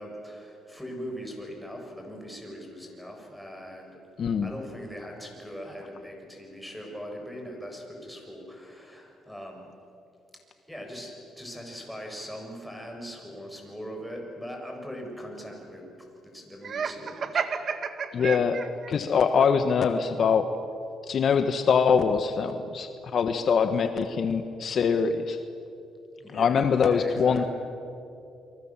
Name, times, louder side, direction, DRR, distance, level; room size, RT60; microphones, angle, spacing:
voice 1, 0.0-4.0 4.4-9.7 10.7-17.5 26.2-27.5, equal, ahead, 1 dB, 7.2 m, -40 dB
voice 2, 4.2-4.5 18.1-18.6 18.9-20.5 21.0-25.4 26.3-27.4, left 6 dB, 55° left, 8 dB, 1.4 m, -23 dB
Laughter, 16.6-18.9, right 6 dB, 55° right, 1.7 m, -31 dB
30.0 x 23.5 x 7.5 m, 2.7 s
cardioid pair, 90°, 0 cm